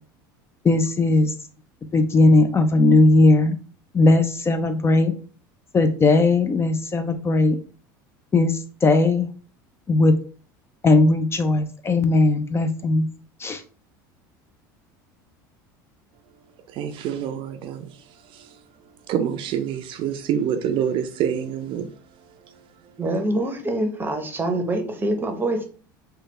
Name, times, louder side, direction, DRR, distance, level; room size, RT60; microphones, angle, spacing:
voice 1, 0.6-1.3 1.9-3.6 3.9-5.1 5.7-7.6 8.3-9.3 9.9-10.1 10.8-13.1 13.4-13.6, left 2 dB, 25° left, 0.4 m, -18 dB
voice 2, 16.7-18.0 18.3-18.6 19.1-21.9, right 8 dB, 50° right, 0.4 m, -26 dB
voice 3, 23.0-25.6, right 1 dB, 20° right, 0.7 m, -25 dB
3.2 x 2.2 x 3.1 m
hypercardioid pair, 90°, 11 cm